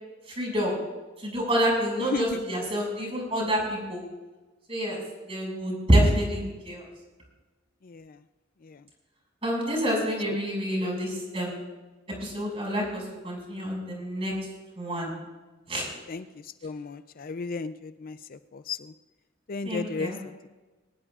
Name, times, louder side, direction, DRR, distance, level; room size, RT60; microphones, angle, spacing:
voice 1, 0.4-0.8 1.2-4.0 4.7-5.0 5.3-6.8 9.4-11.7 12.2-14.3 14.8-15.1 15.7-15.9 19.6-20.2, equal, 30° right, -1 dB, 6.0 m, -27 dB
voice 2, 2.1-2.4 7.8-8.2 8.6-8.8 10.3-10.4 16.1-16.3 16.6-18.9 19.5-20.3, left 4 dB, 50° left, 12 dB, 0.5 m, -34 dB
22.0 x 18.5 x 2.5 m, 1.2 s
head